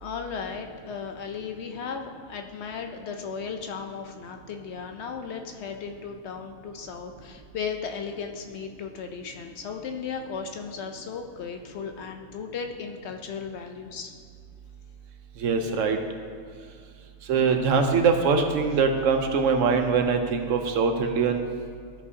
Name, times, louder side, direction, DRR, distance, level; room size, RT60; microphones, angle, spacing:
voice 1, 0.0-14.1, left 6 dB, 65° left, 5 dB, 0.8 m, -36 dB
voice 2, 15.4-16.0 17.3-21.4, right 5 dB, 75° right, 5 dB, 1.0 m, -23 dB
13.5 x 5.4 x 2.7 m, 2.2 s
omnidirectional pair, 1.4 m